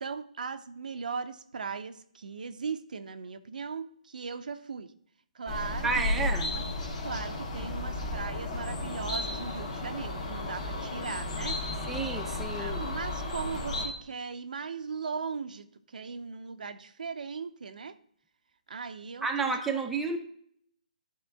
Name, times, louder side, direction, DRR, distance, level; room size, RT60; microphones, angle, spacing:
voice 1, 0.0-4.9 5.3-5.9 6.1-6.6 7.0-11.6 12.3-15.7 15.9-17.9 18.7-19.8, right 5 dB, 75° right, 10 dB, 0.5 m, -38 dB
sound 1, 5.5-13.9, left 2 dB, 45° left, 1.8 m, -34 dB
voice 2, 5.8-6.5 11.9-12.9 19.2-20.2, right 4 dB, 5° right, 2 dB, 0.5 m, -31 dB
10.5 x 3.7 x 3.4 m, 0.64 s
hypercardioid pair, 150°, 4 cm